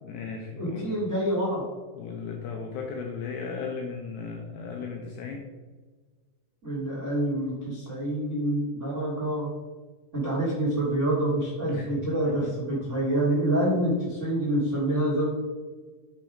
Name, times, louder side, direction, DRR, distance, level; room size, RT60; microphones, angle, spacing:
voice 1, 0.0-0.9 1.9-5.5 11.7-12.8, left 5 dB, 80° left, 1 dB, 2.6 m, -36 dB
voice 2, 0.6-1.6 6.6-9.5 10.1-15.3, right 1 dB, 25° right, -7 dB, 1.5 m, -27 dB
7.0 x 6.0 x 5.0 m, 1.4 s
omnidirectional pair, 5.7 m